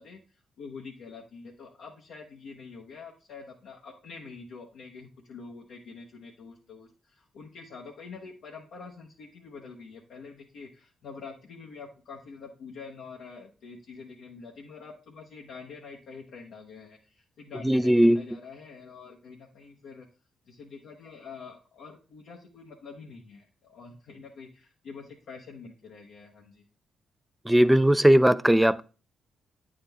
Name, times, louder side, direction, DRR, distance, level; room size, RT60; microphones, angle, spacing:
voice 1, 0.0-20.1 20.5-26.7, left 5 dB, 75° left, 0.8 m, -46 dB
voice 2, 17.6-18.2 27.5-28.8, right 1 dB, 5° right, 0.4 m, -19 dB
8.8 x 3.7 x 3.4 m
supercardioid pair, 55°, 0 cm